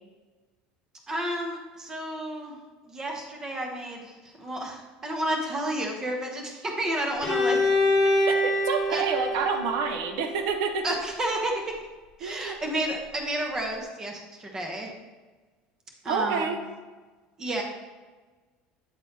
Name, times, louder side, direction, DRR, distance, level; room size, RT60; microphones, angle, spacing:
voice 1, 1.1-2.6 2.9-7.6 7.9-8.0 8.9-9.0 10.8-11.7 12.2-14.9 16.0-16.5 17.4-17.6, right 1 dB, 15° right, 1 dB, 0.8 m, -31 dB
Bowed string instrument, 7.2-11.0, left 1 dB, 10° left, 1.9 m, -26 dB
voice 2, 8.0-10.8 12.2-12.6 16.1-16.6, right 5 dB, 70° right, 6 dB, 0.7 m, -28 dB
8.7 x 3.9 x 4.2 m, 1.3 s
cardioid pair, 175°, 3 cm